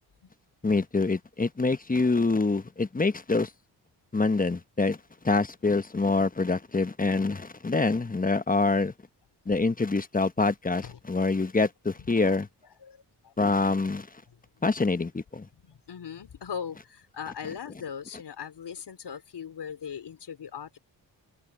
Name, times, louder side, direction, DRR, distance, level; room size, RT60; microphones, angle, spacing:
voice 1, 0.6-3.5 4.1-5.0 5.2-8.9 9.5-12.5 13.4-14.1 14.6-15.5, left 3 dB, 20° left, 1.1 m, -25 dB
voice 2, 12.0-12.4 12.8-13.3 15.5-20.8, left 7 dB, 65° left, 3.9 m, -40 dB
cardioid pair, 65°, 43 cm